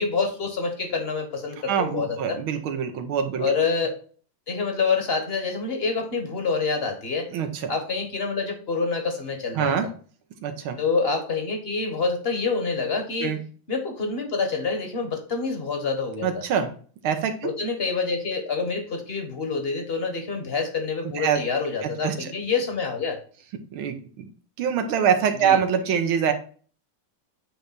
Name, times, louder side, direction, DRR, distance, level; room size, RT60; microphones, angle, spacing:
voice 1, 0.0-2.4 3.4-3.9 4.5-7.3 7.7-9.8 10.8-13.4 13.7-16.4 17.4-23.2 25.4-25.6, left 4 dB, 35° left, 5 dB, 1.1 m, -27 dB
voice 2, 1.7-3.5 7.3-7.7 9.6-9.9 10.4-10.8 13.2-13.4 16.2-16.7 17.0-17.5 21.1-21.4 21.8-22.3 23.7-24.0 24.6-26.3, right 7 dB, 85° right, 7 dB, 1.8 m, -24 dB
8.6 x 3.4 x 3.9 m, 0.42 s
omnidirectional pair, 2.3 m